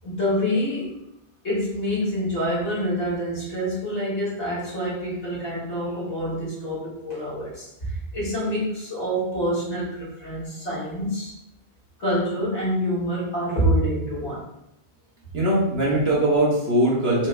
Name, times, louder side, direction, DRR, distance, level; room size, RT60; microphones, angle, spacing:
voice 1, 0.0-0.9 1.4-11.3 12.0-14.5, equal, 80° left, -7 dB, 1.8 m, -26 dB
voice 2, 15.3-17.3, right 1 dB, 65° right, -5 dB, 1.3 m, -21 dB
4.7 x 2.0 x 3.2 m, 0.85 s
omnidirectional pair, 1.1 m